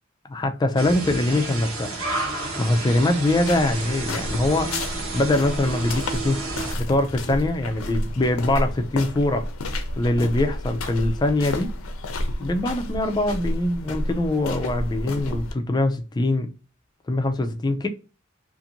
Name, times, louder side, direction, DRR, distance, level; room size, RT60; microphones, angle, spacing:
voice 1, 0.3-1.9 2.6-4.7 5.1-9.4 10.0-11.8 12.4-16.5 17.1-17.9, left 1 dB, 20° left, 0.3 m, -23 dB
sound 1, 0.8-6.7, right 3 dB, 85° right, 0.9 m, -31 dB
sound 2, 3.3-15.5, left 1 dB, 85° left, 0.5 m, -31 dB
2.5 x 2.5 x 2.7 m
head